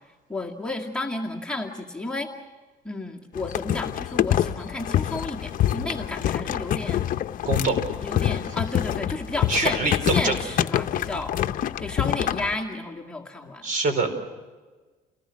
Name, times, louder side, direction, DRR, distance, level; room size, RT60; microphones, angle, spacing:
voice 1, 0.3-2.3 2.8-7.0 8.0-13.7, left 2 dB, 5° left, -2 dB, 2.2 m, -32 dB
sound 1, 3.3-12.5, left 11 dB, 55° left, 0.8 m, -26 dB
voice 2, 7.4-7.8 9.5-10.4 13.6-14.2, right 3 dB, 50° right, 8 dB, 4.7 m, -24 dB
29.5 x 19.0 x 6.4 m, 1.3 s
cardioid pair, 110°, 17 cm